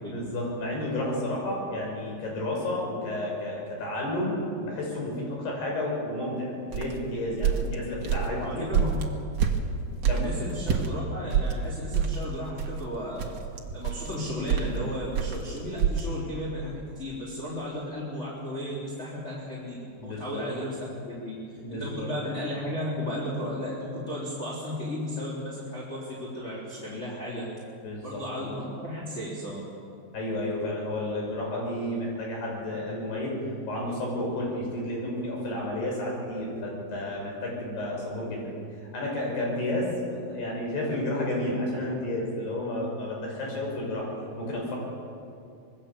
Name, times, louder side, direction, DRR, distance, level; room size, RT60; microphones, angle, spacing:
voice 1, 0.0-8.6 10.1-10.3 20.0-20.4 21.5-22.1 27.8-28.2 30.1-33.4 33.7-44.1 44.4-44.8, left 1 dB, 70° left, -1 dB, 8.1 m, -31 dB
sound 1, 6.7-10.9 11.3-16.0, right 7 dB, 55° right, 2.1 m, -27 dB
voice 2, 8.3-8.9 10.1-13.3 13.7-21.4 21.7-27.5 28.0-29.6, left 1 dB, 15° left, -6 dB, 3.7 m, -34 dB
25.5 x 21.0 x 7.2 m, 2.6 s
omnidirectional pair, 4.9 m